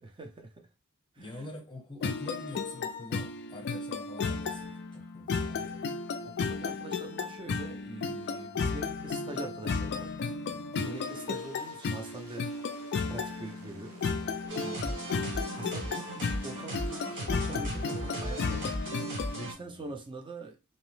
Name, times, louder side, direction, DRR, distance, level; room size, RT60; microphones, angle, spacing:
voice 1, 0.0-0.7 1.2-1.5 5.6-5.7 6.2-10.1 10.4-12.5 13.1-14.1 15.0-18.7 19.3-20.6, right 2 dB, 20° right, 0.5 m, -44 dB
voice 2, 1.2-5.8 14.6-15.0 19.4-19.9, left 2 dB, 20° left, 0.7 m, -45 dB
sound 1, 2.0-19.5, left 4 dB, 50° left, 0.3 m, -34 dB
sound 2, 10.7-18.7, right 3 dB, 70° right, 0.6 m, -53 dB
sound 3, 14.5-19.5, right 1 dB, 55° right, 0.9 m, -37 dB
2.8 x 2.0 x 3.1 m
head